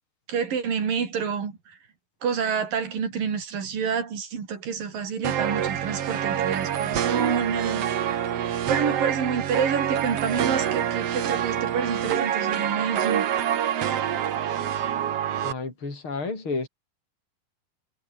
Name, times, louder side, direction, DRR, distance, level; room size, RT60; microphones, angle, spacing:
voice 1, 0.3-1.8 2.2-13.2, right 6 dB, 70° right, 5.4 m, -28 dB
sound 1, 5.2-15.5, right 10 dB, 55° right, 2.1 m, -26 dB
voice 2, 15.4-16.7, left 3 dB, 35° left, 7.0 m, -31 dB
omnidirectional pair, 4.1 m